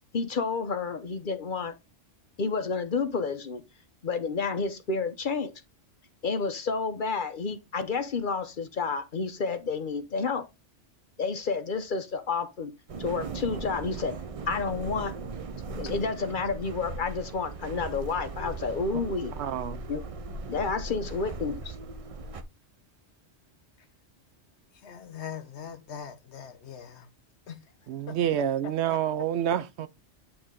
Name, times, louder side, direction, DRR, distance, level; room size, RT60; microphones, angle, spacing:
voice 1, 0.1-1.7 2.4-3.6 4.0-5.5 6.2-10.5 11.2-12.7 13.0-14.2 14.5-15.1 15.8-19.3 19.9-20.0 20.5-21.7, left 4 dB, 50° left, 0.8 m, -30 dB
sound 1, 12.9-22.4, right 3 dB, 45° right, 0.4 m, -38 dB
voice 2, 19.4-19.8 27.9-29.9, right 10 dB, 70° right, 0.8 m, -28 dB
voice 3, 24.8-27.1 27.5-27.6 28.1-28.2, left 8 dB, 65° left, 1.2 m, -41 dB
8.7 x 3.2 x 3.6 m
omnidirectional pair, 1.2 m